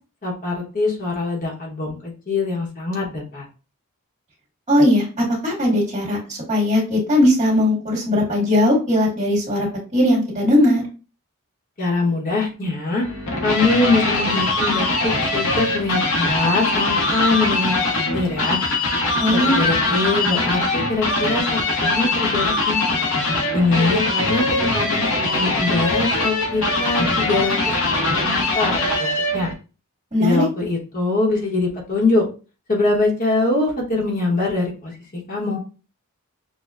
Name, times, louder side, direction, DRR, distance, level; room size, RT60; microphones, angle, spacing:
voice 1, 0.2-3.4 11.8-13.1 13.4-18.6 19.3-22.8 23.5-27.6 27.9-29.5 30.2-32.2 32.7-35.6, left 3 dB, 40° left, -2 dB, 1.0 m, -23 dB
voice 2, 4.7-9.7 9.9-10.8 19.2-19.7 30.1-30.5, left 1 dB, 30° right, -4 dB, 1.9 m, -18 dB
sound 1, 13.0-29.5, left 2 dB, 65° left, 0.9 m, -21 dB
6.3 x 2.2 x 2.4 m, 0.33 s
head